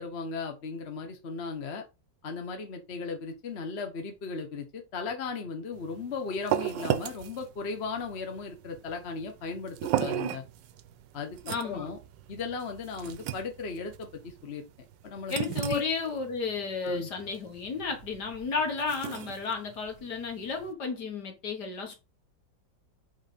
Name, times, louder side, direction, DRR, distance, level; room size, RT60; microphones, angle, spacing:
voice 1, 0.0-1.8 2.2-10.4 11.1-12.0 12.3-14.7 15.0-15.3 15.7-15.8 16.8-17.1, left 4 dB, 40° left, 1.1 m, -36 dB
sound 1, 5.7-20.7, right 12 dB, 80° right, 1.3 m, -36 dB
voice 2, 11.4-11.9 15.3-21.9, left 4 dB, 60° left, 2.2 m, -33 dB
5.5 x 3.9 x 5.1 m
omnidirectional pair, 2.0 m